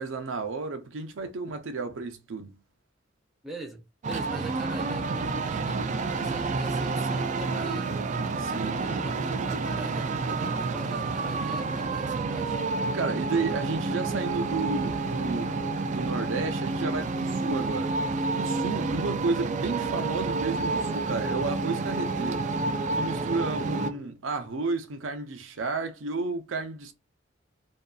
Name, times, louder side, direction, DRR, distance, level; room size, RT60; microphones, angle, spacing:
voice 1, 0.0-2.6 8.4-8.8 12.9-15.6 15.9-17.9 18.3-22.4 22.9-26.9, right 3 dB, 85° right, 0.6 m, -32 dB
voice 2, 3.4-8.0 8.5-12.6 23.5-24.2, right 2 dB, ahead, 0.6 m, -43 dB
sound 1, 4.0-23.9, right 3 dB, 40° right, 0.3 m, -29 dB
2.6 x 2.3 x 2.3 m
head